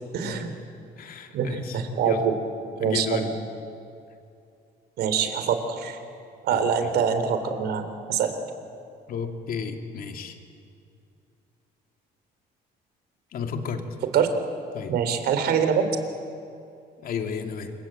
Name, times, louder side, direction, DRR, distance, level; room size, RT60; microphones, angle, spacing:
voice 1, 0.1-0.5 1.3-2.3 2.8-3.3 5.0-6.0 6.4-8.3 14.1-14.3 14.9-15.9, right 7 dB, 70° right, 8 dB, 3.5 m, -24 dB
voice 2, 1.0-2.3 2.8-3.3 6.5-6.9 9.1-10.4 13.3-13.8 14.7-14.9 17.0-17.7, left 6 dB, 60° left, 5 dB, 2.9 m, -33 dB
27.5 x 22.0 x 8.9 m, 2.5 s
cardioid pair, 110°, 17 cm